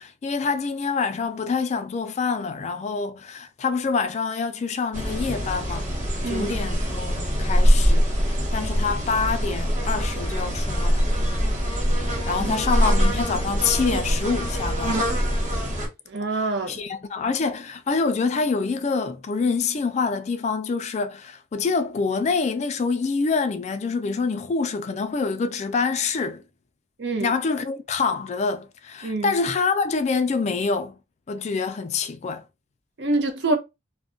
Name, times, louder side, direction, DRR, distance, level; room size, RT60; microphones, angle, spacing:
voice 1, 0.0-5.9 6.3-11.1 12.3-15.0 16.3-26.4 27.2-31.0 31.3-32.4, left 4 dB, 35° left, 0.3 m, -26 dB
sound 1, 4.9-15.9, equal, 40° right, 1.0 m, -23 dB
voice 2, 16.1-16.8 27.0-27.3 29.0-29.3 33.0-33.6, right 2 dB, 65° right, 0.6 m, -26 dB
2.4 x 2.1 x 3.6 m
head